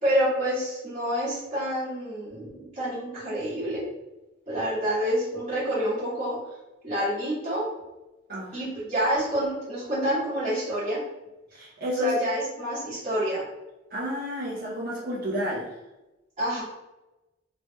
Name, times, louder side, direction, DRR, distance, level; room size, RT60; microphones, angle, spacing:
voice 1, 0.0-3.9 4.5-6.4 6.8-7.7 8.5-11.0 12.0-13.4 16.4-16.6, equal, 35° right, -14 dB, 1.2 m, -28 dB
voice 2, 8.3-8.6 11.5-12.2 13.9-15.7, equal, 50° right, -7 dB, 0.6 m, -30 dB
3.2 x 2.9 x 2.2 m, 1.0 s
head